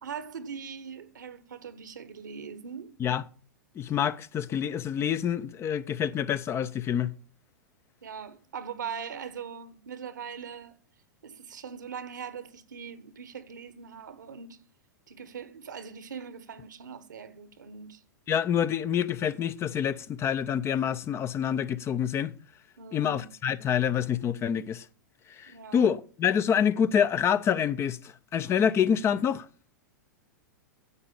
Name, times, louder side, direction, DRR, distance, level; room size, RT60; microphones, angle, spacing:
voice 1, 0.0-2.9 8.0-10.7 11.2-14.6 15.1-18.0 22.8-23.3 25.5-25.9, right 7 dB, 75° right, 1.4 m, -41 dB
voice 2, 3.8-7.1 18.3-22.3 22.9-24.8 25.3-29.5, left 8 dB, 25° left, 0.7 m, -27 dB
9.9 x 7.8 x 7.3 m
hypercardioid pair, 105°, 10 cm